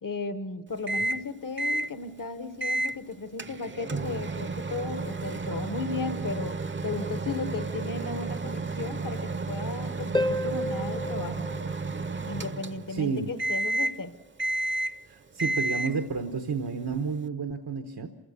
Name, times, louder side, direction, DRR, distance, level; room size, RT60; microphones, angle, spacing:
voice 1, 0.0-11.5 12.3-14.2, left 4 dB, 60° left, 11 dB, 1.1 m, -35 dB
Microwave oven, 0.9-1.3 1.6-1.9 2.6-3.0 3.4-13.0 13.4-14.0 14.4-15.0 15.4-16.0, right 2 dB, 30° right, 0.6 m, -31 dB
Harp, 10.1-12.6 16.1-16.2, left 1 dB, 15° left, 0.6 m, -32 dB
voice 2, 12.9-13.3 15.1-18.1, right 5 dB, 85° right, 6 dB, 1.1 m, -31 dB
27.0 x 16.0 x 6.8 m, 1.2 s
wide cardioid pair, 55°, 37 cm